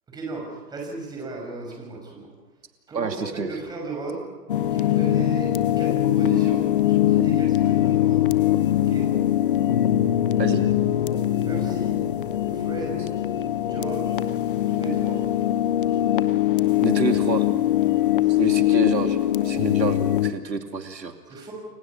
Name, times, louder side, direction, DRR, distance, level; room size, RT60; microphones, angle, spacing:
voice 1, 0.1-2.3 2.9-4.3 4.7-8.4 8.7-9.1 11.4-12.0 12.5-13.0 13.6-14.2 14.5-15.2 17.9-18.4 21.3-21.5, right 3 dB, 10° right, -1 dB, 5.9 m, -36 dB
voice 2, 2.9-3.5 10.4-10.7 16.8-17.5 18.3-19.2 19.4-21.1, right 5 dB, 85° right, 6 dB, 2.6 m, -28 dB
sound 1, 4.5-20.3, left 12 dB, 30° left, 0.9 m, -22 dB
29.0 x 23.0 x 6.1 m, 1.2 s
hypercardioid pair, 150°, 49 cm